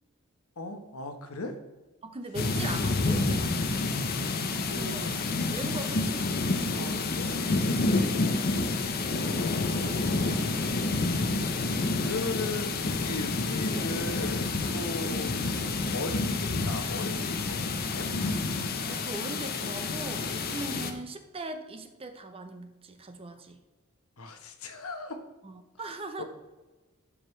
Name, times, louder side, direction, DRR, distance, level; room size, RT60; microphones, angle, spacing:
voice 1, 0.6-1.6 4.3-5.1 6.8-7.3 8.6-9.4 9.8-10.0 11.4-15.3 15.9-18.1 24.2-25.2 25.8-26.2, left 2 dB, 85° left, 6 dB, 1.0 m, -38 dB
voice 2, 2.0-3.7 4.7-5.2 5.5-6.5 15.0-15.2 18.8-23.6 25.4-26.2, right 2 dB, 25° right, 7 dB, 0.7 m, -40 dB
sound 1, 2.3-20.9, left 3 dB, 45° left, 0.7 m, -29 dB
11.5 x 5.0 x 3.2 m, 1.1 s
head